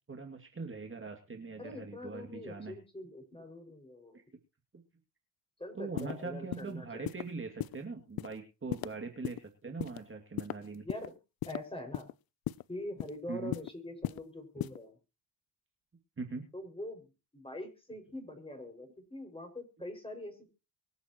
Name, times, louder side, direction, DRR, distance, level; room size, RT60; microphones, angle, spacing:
voice 1, 0.1-2.8 4.1-4.2 4.7-4.8 5.7-10.8 13.3-13.5 16.2-16.4, right 4 dB, 25° right, 3 dB, 2.5 m, -41 dB
voice 2, 1.6-4.2 5.6-7.1 10.8-11.2 11.5-12.1 12.7-15.0 16.5-20.5, left 1 dB, 10° left, 4 dB, 6.1 m, -44 dB
sound 1, 6.0-6.1 6.5-6.7 7.1-7.2 7.6-7.8 8.2-8.3 8.7-8.9 9.2-9.4 9.8-10.0 10.4-11.1 11.4-11.6 11.9-12.1 12.5-12.6 13.0-13.2 13.5-13.7 14.0-14.2 14.6-14.8, left 14 dB, 50° left, 0.7 m, -35 dB
24.0 x 8.2 x 3.1 m, 0.30 s
supercardioid pair, 60°, 45 cm